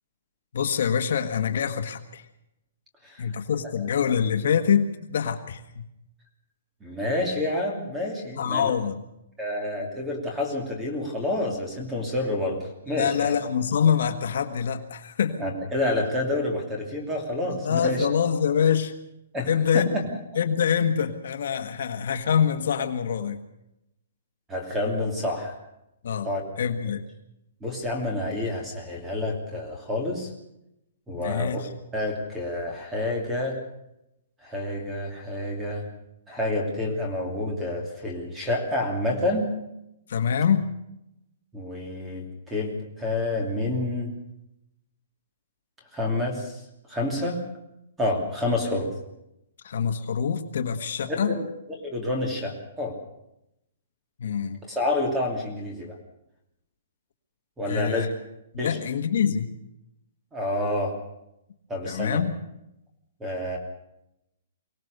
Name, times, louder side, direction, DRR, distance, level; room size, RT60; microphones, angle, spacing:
voice 1, 0.5-2.2 3.2-5.8 8.4-9.0 12.9-15.4 17.5-18.9 19.5-19.9 20.4-23.4 26.0-26.3 26.6-27.0 31.1-31.7 40.1-40.7 49.6-51.3 54.2-54.6 57.7-58.1 58.5-59.5 61.8-62.4, left 7 dB, 55° left, 6 dB, 1.6 m, -25 dB
voice 2, 6.8-8.7 9.4-13.3 15.4-18.1 19.3-19.8 24.5-25.5 26.2-26.4 27.6-30.3 31.1-31.6 31.9-33.6 34.4-35.9 36.3-39.5 41.5-44.1 45.9-46.6 46.9-47.4 48.0-48.9 51.1-51.5 51.8-52.9 54.7-56.0 57.6-58.1 58.6-58.8 60.3-60.9 61.7-62.2 63.2-63.6, left 1 dB, 5° right, 1 dB, 2.9 m, -28 dB
24.0 x 17.5 x 6.7 m, 0.85 s
hypercardioid pair, 180°, 0 cm